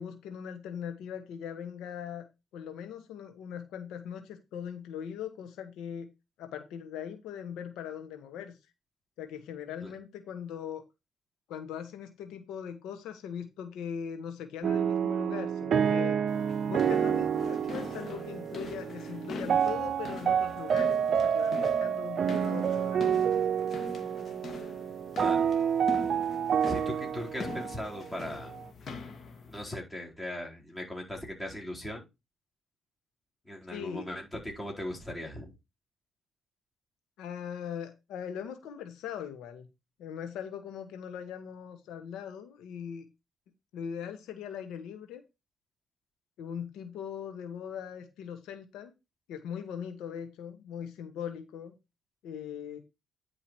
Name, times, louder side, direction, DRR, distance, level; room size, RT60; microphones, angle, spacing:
voice 1, 0.0-2.2 2.5-6.1 6.4-8.6 9.2-10.8 11.5-16.2 16.7-23.4 33.7-34.1 37.2-39.7 40.0-43.1 43.7-45.2 46.4-48.9 49.3-51.7 52.2-52.8, left 8 dB, 90° left, 1.3 m, -40 dB
sound 1, 14.6-28.6, right 8 dB, 55° right, 0.6 m, -29 dB
sound 2, 16.3-29.7, left 3 dB, 50° left, 2.1 m, -43 dB
voice 2, 26.6-28.5 29.5-32.1 33.5-35.5, left 1 dB, 15° left, 4.2 m, -38 dB
10.0 x 4.9 x 4.5 m
cardioid pair, 90°, 0 cm